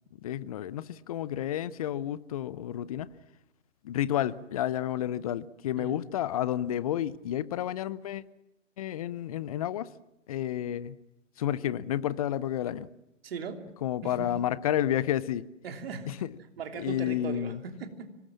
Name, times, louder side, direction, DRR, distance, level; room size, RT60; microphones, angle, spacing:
voice 1, 0.2-3.1 3.8-8.2 8.8-9.9 10.3-11.0 11.4-12.9 13.8-15.5 16.1-16.3 16.8-17.6, left 11 dB, 30° left, 0.8 m, -31 dB
voice 2, 13.2-13.6 14.0-14.3 15.6-16.1 16.6-18.1, right 5 dB, 50° right, 3.2 m, -38 dB
25.5 x 19.5 x 7.5 m
figure-of-eight pair, 125°, 38 cm